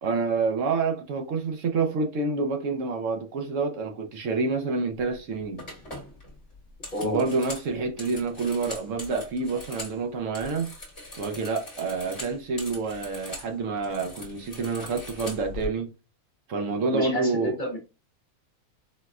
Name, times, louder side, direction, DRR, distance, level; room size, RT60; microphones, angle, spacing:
voice 1, 0.0-5.6 7.0-10.7 11.2-15.9 16.5-17.6, right 4 dB, 65° right, 0.9 m, -28 dB
sound 1, 5.0-5.2 5.6-10.0 10.3-13.5 13.8-15.7, left 2 dB, 30° left, 1.2 m, -41 dB
voice 2, 6.9-7.2 16.9-17.8, left 1 dB, 45° left, 0.7 m, -30 dB
4.1 x 2.1 x 2.3 m
omnidirectional pair, 1.5 m